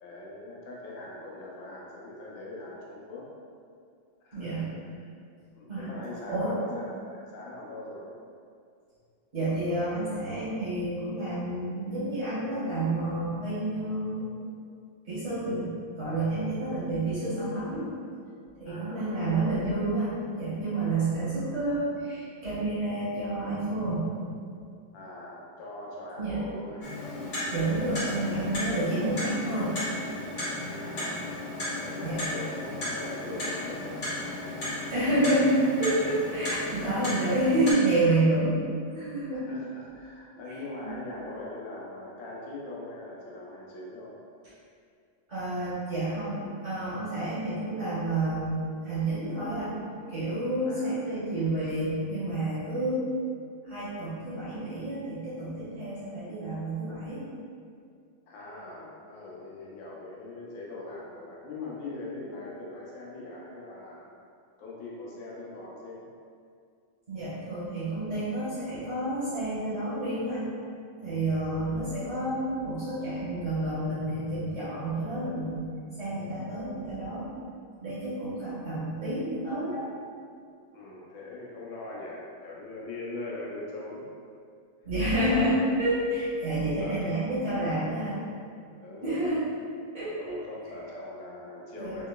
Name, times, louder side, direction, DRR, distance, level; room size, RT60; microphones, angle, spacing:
voice 1, 0.0-3.2 4.2-4.7 5.5-8.1 18.6-19.2 24.9-26.9 27.7-28.2 30.8-31.3 31.8-34.1 39.3-44.2 50.6-50.9 58.3-64.1 64.6-66.0 80.7-84.0 85.1-85.6 86.6-87.2 88.8-89.2 90.2-92.1, left 2 dB, 80° left, -5 dB, 1.4 m, -41 dB
voice 2, 4.3-4.6 5.7-5.9 6.3-6.6 9.3-14.2 15.0-17.9 18.6-24.1 26.2-26.4 27.5-29.7 32.0-32.2 34.9-38.6 38.9-39.5 40.8-41.0 45.3-49.8 50.1-53.0 53.6-57.2 67.1-70.5 71.0-75.6 76.0-77.3 77.8-79.8 84.8-88.2 89.0-89.5 89.9-90.4 91.8-92.0, right 1 dB, 50° right, -11 dB, 1.0 m, -29 dB
Clock, 26.8-37.7, left 1 dB, 45° left, 1.2 m, -34 dB
3.8 x 2.8 x 2.2 m, 2.3 s
omnidirectional pair, 2.1 m